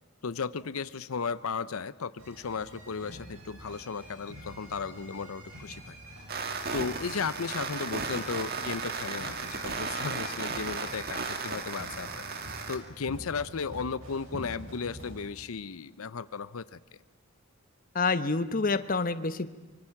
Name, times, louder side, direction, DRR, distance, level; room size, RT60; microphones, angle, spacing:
voice 1, 0.2-6.0 6.7-12.2 12.7-16.8, left 5 dB, 90° left, 16 dB, 0.7 m, -35 dB
sound 1, 2.2-15.2, equal, 70° right, 7.1 m, -46 dB
sound 2, 6.3-12.8, right 4 dB, 45° right, 2.0 m, -35 dB
voice 2, 17.9-19.5, left 3 dB, 40° left, 13 dB, 0.9 m, -27 dB
25.0 x 24.5 x 5.9 m, 1.4 s
head